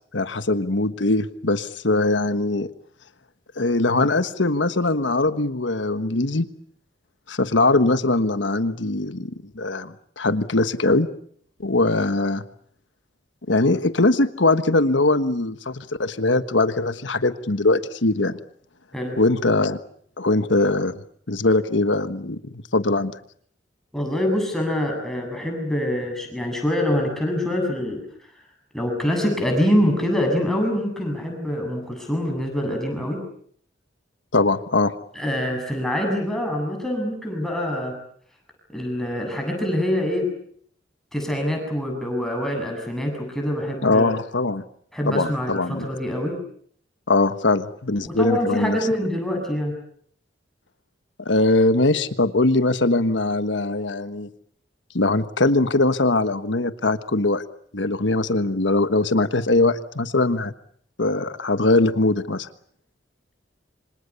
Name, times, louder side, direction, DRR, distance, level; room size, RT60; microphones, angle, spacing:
voice 1, 0.1-2.7 3.6-6.5 7.3-11.1 11.6-12.4 13.5-18.4 19.2-19.8 20.2-21.0 21.3-23.1 34.3-34.9 43.8-44.6 45.1-45.9 47.1-48.8 51.2-54.3 54.9-57.4 57.7-60.5 61.0-62.5, left 2 dB, 75° left, 12 dB, 1.4 m, -21 dB
voice 2, 23.9-28.0 28.7-33.2 35.1-37.9 38.7-40.3 41.1-44.1 44.9-46.4 48.0-49.8, left 1 dB, ahead, 2 dB, 7.6 m, -25 dB
27.5 x 25.5 x 7.0 m, 0.62 s
head